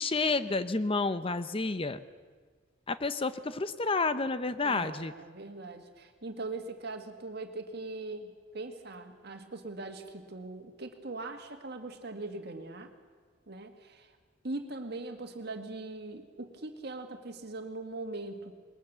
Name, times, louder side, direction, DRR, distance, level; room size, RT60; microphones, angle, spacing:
voice 1, 0.0-2.0 2.9-5.1, left 3 dB, 30° left, 12 dB, 0.8 m, -30 dB
voice 2, 4.6-12.9 13.5-14.1 14.4-18.5, right 2 dB, 55° right, 6 dB, 1.9 m, -41 dB
21.0 x 20.5 x 6.9 m, 1.5 s
head